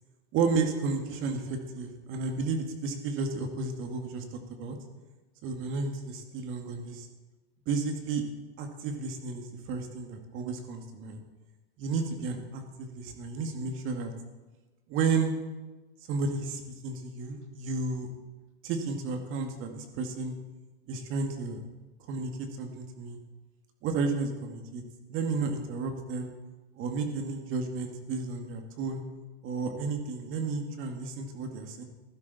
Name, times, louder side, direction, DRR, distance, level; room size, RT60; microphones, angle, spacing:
voice 1, 0.3-4.8 5.4-7.1 7.7-8.2 8.6-11.2 11.8-14.1 14.9-15.3 16.1-18.1 18.6-20.3 20.9-21.6 22.1-23.2 23.8-24.8 25.1-26.3 26.8-29.0 29.4-31.8, right 4 dB, 40° right, 5 dB, 2.2 m, -32 dB
15.5 x 12.0 x 4.2 m, 1.2 s
hypercardioid pair, 125°, 30 cm